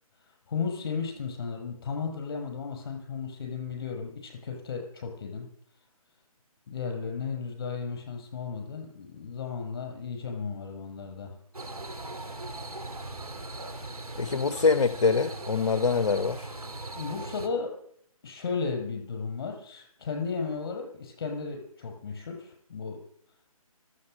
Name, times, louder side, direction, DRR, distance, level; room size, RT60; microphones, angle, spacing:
voice 1, 0.3-5.5 6.7-11.4 16.9-17.7 18.2-23.0, left 5 dB, 40° left, 4 dB, 6.2 m, -34 dB
sound 1, 11.5-17.5, right 2 dB, 80° right, 2.5 m, -39 dB
voice 2, 14.2-16.5, left 4 dB, 55° left, 14 dB, 0.9 m, -24 dB
25.0 x 8.4 x 6.6 m, 0.64 s
figure-of-eight pair, 145°, 19 cm